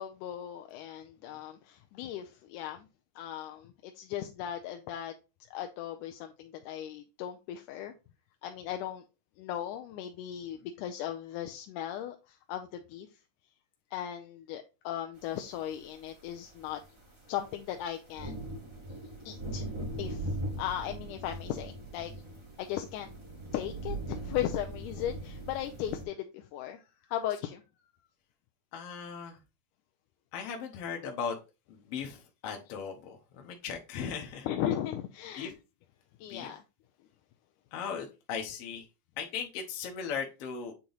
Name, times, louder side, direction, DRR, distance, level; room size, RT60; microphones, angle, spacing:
voice 1, 0.0-2.9 3.2-5.1 5.5-7.9 8.4-9.0 9.4-13.1 13.9-16.8 17.3-18.4 19.3-19.6 20.0-20.3 20.6-22.1 22.6-23.1 23.5-26.8 27.1-27.6 34.5-35.6 36.2-36.6, left 11 dB, 85° left, 5 dB, 2.1 m, -37 dB
sound 1, 15.7-15.8 16.3-26.0, right 1 dB, 25° right, 0.6 m, -40 dB
voice 2, 28.7-29.4 30.3-31.4 31.7-34.5 35.3-35.5 36.3-36.6 37.7-38.9 39.2-40.7, left 6 dB, 65° left, 1 dB, 1.6 m, -38 dB
8.6 x 2.9 x 3.9 m, 0.28 s
omnidirectional pair, 3.6 m